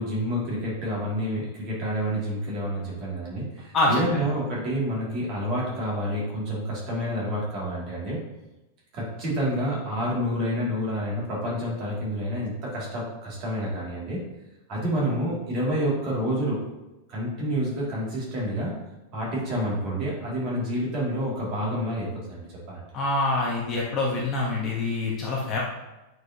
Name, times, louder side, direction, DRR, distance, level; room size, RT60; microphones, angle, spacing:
voice 1, 0.0-8.2 8.9-14.2 14.7-16.6 17.1-18.8 19.1-22.9, equal, 30° right, -5 dB, 2.3 m, -28 dB
voice 2, 3.7-4.2 22.9-25.6, left 2 dB, 20° left, -4 dB, 1.0 m, -25 dB
8.7 x 4.7 x 2.8 m, 1.0 s
supercardioid pair, 175°, 0 cm